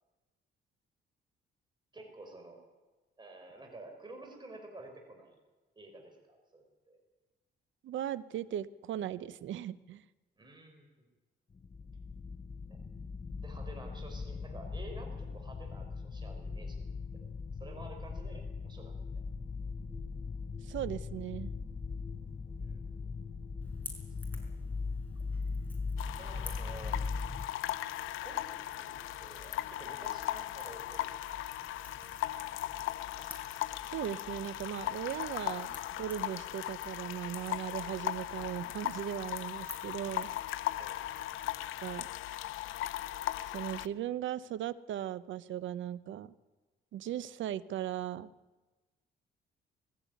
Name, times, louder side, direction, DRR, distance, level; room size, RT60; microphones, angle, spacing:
voice 1, 1.9-2.6 3.2-5.4 5.8-7.0 10.4-11.1 12.7-12.8 13.4-16.9 17.1-19.2 22.6-23.0 26.1-27.0 28.2-31.1 40.8-41.0, right 2 dB, 20° right, 3 dB, 5.2 m, -51 dB
voice 2, 7.8-10.0 20.6-21.5 33.2-33.3 33.9-40.3 41.8-42.1 43.5-46.3 46.9-48.3, right 11 dB, 75° right, 17 dB, 0.8 m, -38 dB
sound 1, 11.5-27.5, left 4 dB, 30° left, 1.0 m, -39 dB
Crackle / Crack, 23.6-41.9, left 2 dB, 10° left, 5.5 m, -54 dB
sound 2, 26.0-43.9, left 14 dB, 85° left, 0.7 m, -38 dB
19.0 x 16.0 x 9.3 m, 1.2 s
cardioid pair, 90°, 20 cm